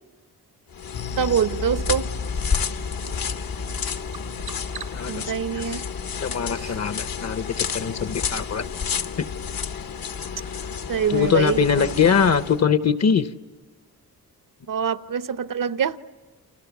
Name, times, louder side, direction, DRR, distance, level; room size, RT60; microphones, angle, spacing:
sound 1, 0.7-12.6, left 6 dB, 65° left, 1.0 m, -31 dB
sound 2, 0.9-9.6 9.9-10.1 10.5-10.6, left 2 dB, 80° left, 6.9 m, -37 dB
voice 1, 1.2-2.1 5.1-5.8 10.9-11.9 14.7-16.0, right 7 dB, 60° right, 0.8 m, -25 dB
Bird vocalization bird call bird song, 2.6-8.2, right 7 dB, 90° right, 2.7 m, -47 dB
voice 2, 4.9-5.3 6.2-8.6 9.2-9.3 11.1-13.3, left 6 dB, 45° left, 0.8 m, -22 dB
30.0 x 28.0 x 7.1 m
wide cardioid pair, 145°, 38 cm